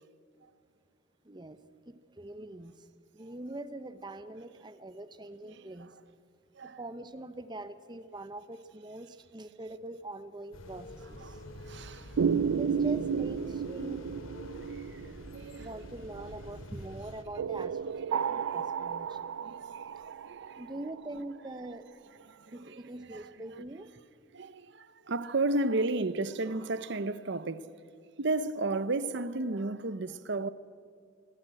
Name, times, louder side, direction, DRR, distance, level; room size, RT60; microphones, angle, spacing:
voice 1, 1.2-2.9 3.1-5.9 6.6-11.4 12.5-14.1 15.6-19.3 20.6-21.8 22.5-23.9, right 1 dB, 20° right, 0.9 m, -43 dB
sound 1, 10.5-17.2, left 1 dB, 90° left, 2.4 m, -47 dB
voice 2, 11.2-12.1 14.7-15.0 15.3-15.7 18.0-18.1 18.8-20.6 22.2-23.3 24.3-27.7 28.2-30.5, right 2 dB, 60° right, 0.8 m, -34 dB
sound 2, 12.2-16.4 17.4-21.2, right 6 dB, 90° right, 0.4 m, -32 dB
25.0 x 15.0 x 7.8 m
head